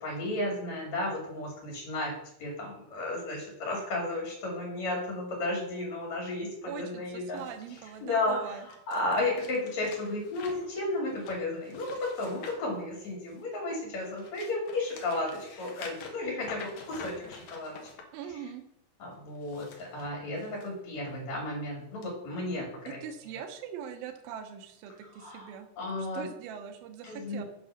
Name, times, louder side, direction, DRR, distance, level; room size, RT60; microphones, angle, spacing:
voice 1, 0.0-2.1 2.4-7.4 8.0-17.8 19.0-22.7 25.1-25.5 25.8-26.3 27.0-27.4, left 2 dB, 50° left, -1 dB, 3.1 m, -33 dB
voice 2, 6.7-8.7 18.1-18.6 22.9-25.7 26.0-27.4, right 8 dB, 70° right, 6 dB, 2.5 m, -42 dB
sound 1, 7.4-13.5 14.0-18.0 19.3-20.7 21.1-21.4 22.0-22.1, left 5 dB, 65° left, 2.0 m, -48 dB
7.7 x 6.2 x 5.7 m, 0.77 s
omnidirectional pair, 4.8 m